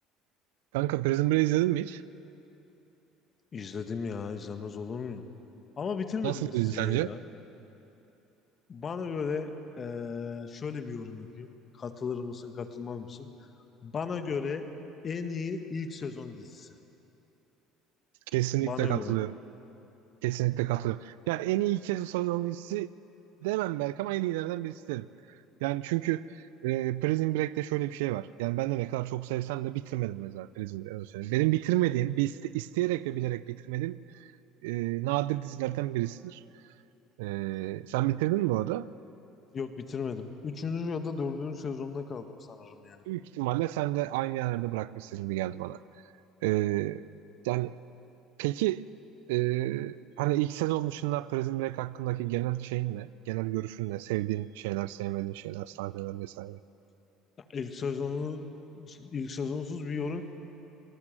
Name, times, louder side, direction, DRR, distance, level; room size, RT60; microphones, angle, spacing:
voice 1, 0.7-2.0 6.2-7.1 18.3-19.3 20.2-22.9 23.4-25.1 25.6-34.3 34.6-36.4 37.2-38.9 43.1-45.8 46.4-47.0 47.4-47.7 48.4-48.8 49.3-56.6, right 17 dB, 75° right, 17 dB, 0.5 m, -30 dB
voice 2, 3.5-5.2 5.8-7.2 8.7-9.5 9.8-13.3 13.8-14.6 15.0-16.7 18.6-19.2 39.5-43.0 57.5-58.5 58.8-60.2, left 5 dB, 40° left, 8 dB, 1.9 m, -35 dB
26.5 x 19.5 x 7.7 m, 3.0 s
hypercardioid pair, 65°, 0 cm